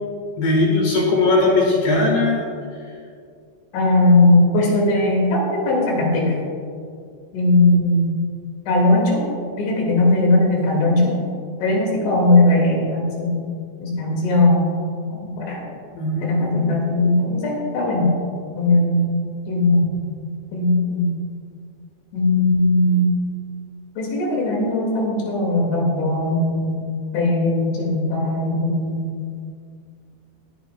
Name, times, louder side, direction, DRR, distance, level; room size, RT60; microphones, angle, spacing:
voice 1, 0.4-2.4 15.9-16.7, left 2 dB, 65° left, -2 dB, 3.4 m, -19 dB
voice 2, 3.7-6.3 7.3-8.2 8.7-9.2 9.6-11.1 11.6-14.8 15.2-15.6 16.2-18.1 18.6-19.2 19.5-19.9 20.5-21.2 22.1-23.1 24.0-26.8 27.1-29.0, left 2 dB, 80° left, -2 dB, 4.5 m, -19 dB
24.0 x 8.3 x 2.3 m, 2.2 s
omnidirectional pair, 5.3 m